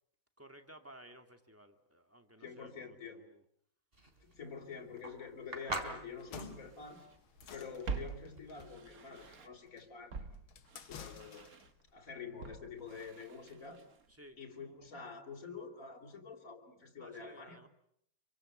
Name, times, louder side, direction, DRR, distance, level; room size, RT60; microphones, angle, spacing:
voice 1, 0.4-3.4 14.1-14.4 17.0-17.7, right 1 dB, 5° right, 6 dB, 2.2 m, -56 dB
voice 2, 2.4-3.3 4.2-7.0 7.5-10.5 10.8-11.5 11.9-13.8 14.4-17.6, left 5 dB, 40° left, 3 dB, 3.8 m, -47 dB
sound 1, 3.9-9.0, right 1 dB, 25° right, 3.6 m, -44 dB
Walk footsteps, 5.0-5.1 5.7-7.2 7.4-9.7 10.1-14.2 14.4-14.5, right 5 dB, 45° right, 1.9 m, -47 dB
sound 2, 6.1-11.8, left 8 dB, 75° left, 2.2 m, -53 dB
28.0 x 24.5 x 8.0 m, 0.71 s
omnidirectional pair, 2.3 m